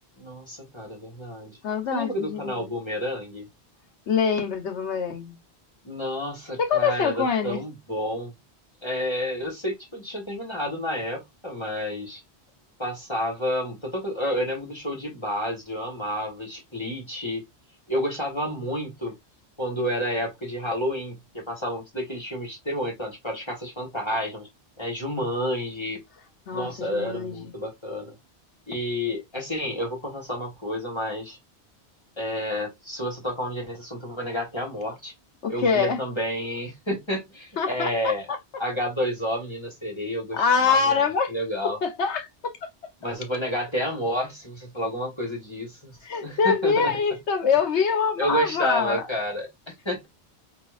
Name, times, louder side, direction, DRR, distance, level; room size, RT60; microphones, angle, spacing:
voice 1, 0.2-1.6 1.9-3.5 5.8-8.3 8.8-12.2 12.8-17.4 17.9-19.2 19.6-24.5 24.8-26.0 26.5-28.2 28.7-31.4 32.2-35.1 35.5-38.3 38.6-41.0 41.3-41.8 43.0-47.0 48.2-50.1, equal, 25° left, 1.3 m, -30 dB
voice 2, 1.6-2.7 4.1-5.4 6.6-7.6 26.5-27.5 35.4-36.0 37.6-38.1 40.3-41.3 41.8-42.7 46.0-49.0, left 6 dB, 90° left, 1.2 m, -24 dB
5.0 x 2.8 x 2.4 m
omnidirectional pair, 1.1 m